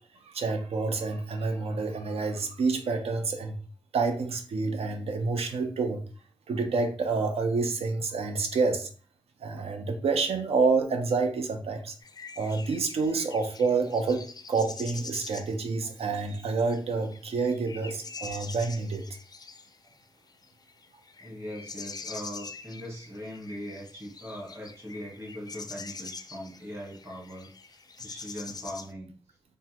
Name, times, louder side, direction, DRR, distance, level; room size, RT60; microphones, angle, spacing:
voice 1, 0.3-3.6 3.9-6.0 6.5-8.9 9.4-11.9 12.4-19.1, right 4 dB, 85° right, 5 dB, 0.5 m, -28 dB
sound 1, 12.0-28.9, left 4 dB, 40° left, 0.4 m, -45 dB
voice 2, 21.2-29.1, equal, 25° right, -2 dB, 1.2 m, -40 dB
3.5 x 2.1 x 2.9 m, 0.41 s
cardioid pair, 70°, 10 cm